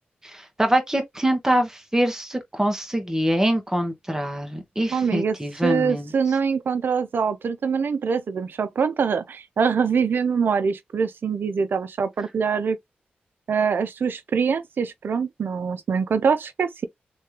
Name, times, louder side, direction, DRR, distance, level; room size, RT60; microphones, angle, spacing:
voice 1, 0.2-6.1, right 1 dB, 15° right, 1.5 m, -24 dB
voice 2, 4.9-5.4 5.6-12.8 13.5-16.9, right 6 dB, 65° right, 0.5 m, -24 dB
3.3 x 3.1 x 2.8 m
cardioid pair, 55°, 4 cm